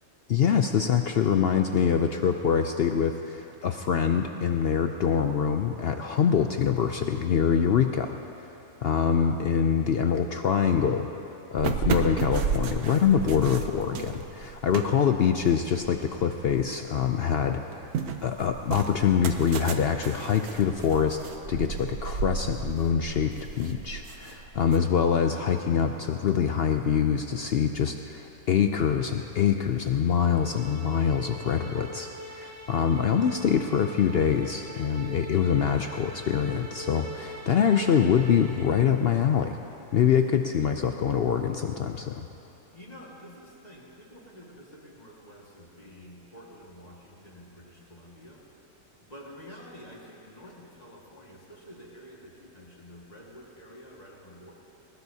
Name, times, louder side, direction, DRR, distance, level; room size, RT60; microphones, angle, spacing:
voice 1, 0.3-8.1 8.8-11.1 11.5-17.9 18.2-39.6 39.9-42.3, left 7 dB, 65° left, 5 dB, 0.6 m, -25 dB
sound 1, 11.6-16.8 17.2-24.8, right 6 dB, 85° right, 1.3 m, -34 dB
sound 2, 30.2-39.0, equal, 25° right, 0.4 m, -43 dB
voice 2, 42.7-48.4 49.0-54.5, equal, 25° left, -3 dB, 2.0 m, -48 dB
20.0 x 19.5 x 2.8 m, 2.9 s
omnidirectional pair, 1.5 m